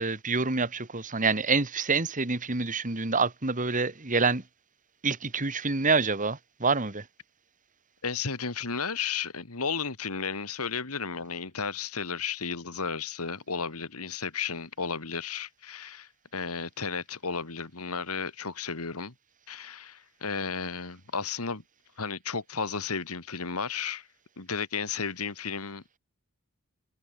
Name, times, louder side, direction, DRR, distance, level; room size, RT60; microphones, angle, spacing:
voice 1, 0.0-4.4 5.0-7.0, right 4 dB, 35° right, 2.0 m, -27 dB
voice 2, 8.0-19.1 19.5-21.6 22.0-24.1 24.4-26.0, left 5 dB, 75° left, 2.3 m, -33 dB
head